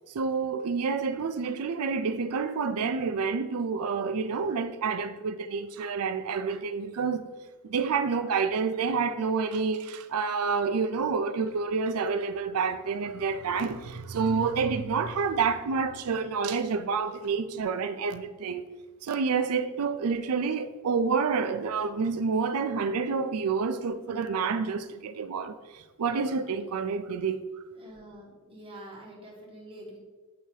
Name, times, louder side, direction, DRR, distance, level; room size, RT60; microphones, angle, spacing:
voice 1, 0.1-7.3 7.6-18.6 19.0-27.4, right 5 dB, 80° right, 0.4 m, -28 dB
voice 2, 27.7-30.0, right 1 dB, 25° right, 1.5 m, -46 dB
8.3 x 2.8 x 4.6 m
head